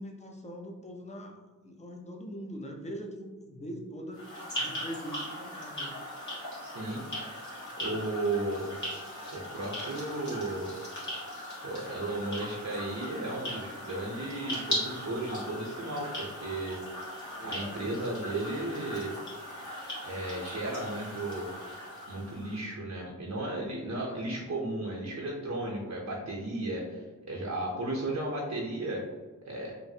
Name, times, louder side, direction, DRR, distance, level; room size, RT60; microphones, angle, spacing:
voice 1, 0.0-4.2 4.6-6.0 17.4-18.0 24.1-24.2, equal, 20° left, 1 dB, 0.4 m, -42 dB
sound 1, 4.1-22.6, left 1 dB, 60° left, 1.4 m, -39 dB
voice 2, 6.6-7.0 7.8-8.7 9.3-10.7 11.6-16.8 17.4-19.1 20.0-21.5 22.1-29.0 29.5-29.7, right 2 dB, 60° right, -3 dB, 0.6 m, -34 dB
3.0 x 2.5 x 2.6 m, 1.3 s
wide cardioid pair, 105°, 32 cm